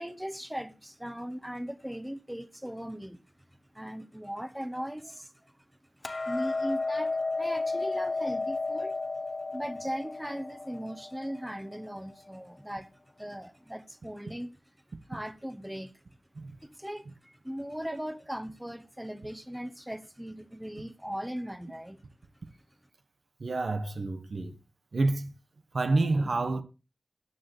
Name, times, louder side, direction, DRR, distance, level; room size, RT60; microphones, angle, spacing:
voice 1, 0.0-3.2 3.7-5.6 6.2-9.0 9.5-12.9 13.2-14.6 15.0-16.0 16.6-22.0, equal, 5° right, 1.0 m, -38 dB
Hammer, 6.0-12.3, left 3 dB, 45° left, 1.0 m, -33 dB
voice 2, 23.4-24.5 24.9-25.3 25.7-26.6, right 2 dB, 80° right, 1.2 m, -28 dB
14.0 x 9.2 x 3.1 m
cardioid pair, 40°, 0 cm